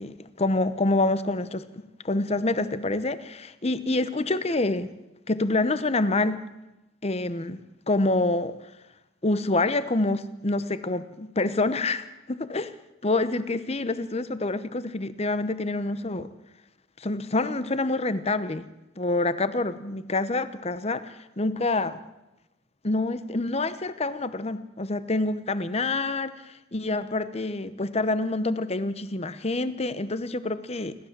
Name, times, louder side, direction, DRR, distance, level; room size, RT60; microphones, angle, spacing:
voice 1, 0.0-1.6 2.0-4.9 5.3-6.4 7.0-8.5 9.2-12.7 13.0-16.3 17.0-18.7 19.0-22.0 22.8-26.3 26.7-30.9, left 2 dB, 30° left, 13 dB, 0.9 m, -27 dB
28.0 x 12.5 x 7.5 m, 0.99 s
head